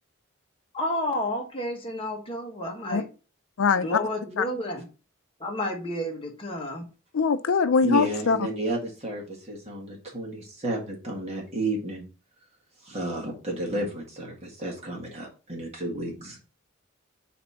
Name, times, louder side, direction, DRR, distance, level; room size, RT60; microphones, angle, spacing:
voice 1, 0.7-3.1 3.8-4.9 5.4-6.8, left 1 dB, 25° left, 1.4 m, -31 dB
voice 2, 3.6-4.0 4.4-4.5 7.1-8.4, left 5 dB, 80° left, 0.4 m, -22 dB
voice 3, 7.8-12.0 12.8-16.4, right 1 dB, 30° right, 1.7 m, -32 dB
4.2 x 4.1 x 5.6 m
head